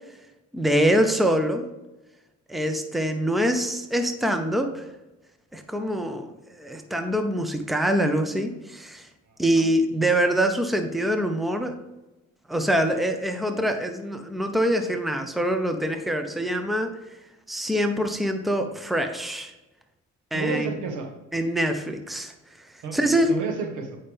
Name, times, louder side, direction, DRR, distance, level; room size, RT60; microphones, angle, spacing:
voice 1, 0.5-1.7 2.5-4.9 5.5-9.1 9.4-11.8 12.5-17.2 17.5-19.5 20.3-20.7 21.3-22.3 22.6-23.3, right 1 dB, ahead, 6 dB, 0.8 m, -24 dB
voice 2, 9.3-9.7 20.3-21.1 22.8-24.0, right 4 dB, 80° right, 4 dB, 1.5 m, -32 dB
8.7 x 5.6 x 3.5 m, 1.0 s
cardioid pair, 90°, 30 cm